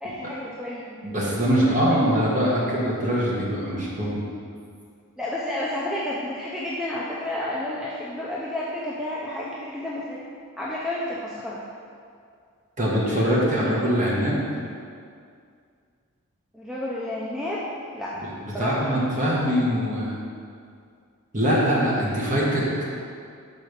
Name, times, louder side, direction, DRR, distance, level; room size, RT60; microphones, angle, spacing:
voice 1, 0.0-1.0 1.6-2.1 5.2-10.2 10.6-11.6 16.5-17.6 17.9-18.2 18.5-18.8, left 1 dB, ahead, -7 dB, 0.5 m, -31 dB
voice 2, 1.0-4.2 12.8-14.4 18.4-20.2 21.3-22.8, equal, 35° right, -5 dB, 1.3 m, -23 dB
6.3 x 4.1 x 5.2 m, 2.3 s
head